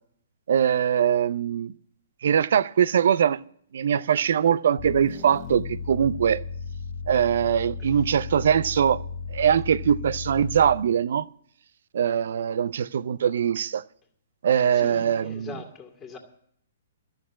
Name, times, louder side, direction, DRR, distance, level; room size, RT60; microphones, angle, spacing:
voice 1, 0.5-1.7 2.2-3.4 3.7-6.4 7.1-9.0 9.3-11.3 11.9-13.8 14.4-15.5, right 8 dB, 60° right, 0.5 m, -22 dB
sound 1, 4.8-11.0, left 5 dB, 35° left, 0.9 m, -35 dB
voice 2, 14.7-16.2, left 4 dB, 15° left, 2.1 m, -41 dB
13.5 x 6.5 x 9.5 m
figure-of-eight pair, 120°, 0 cm